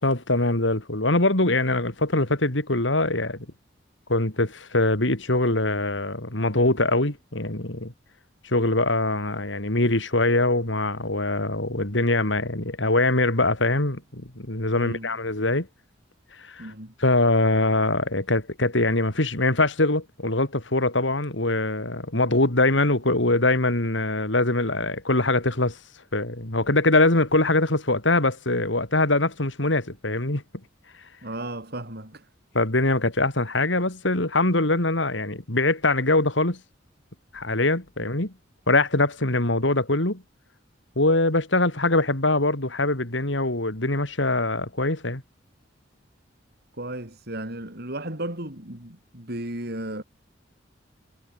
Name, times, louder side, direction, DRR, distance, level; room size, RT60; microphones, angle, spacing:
voice 1, 0.0-3.5 4.1-7.9 8.4-15.7 16.4-16.7 17.0-25.8 26.1-30.4 32.5-36.6 37.3-38.3 38.7-40.2 41.0-45.2, left 2 dB, 75° left, 3.8 m, -23 dB
voice 2, 14.7-15.1 16.6-16.9 31.2-32.3 46.8-50.0, right 1 dB, 55° right, 7.5 m, -34 dB
head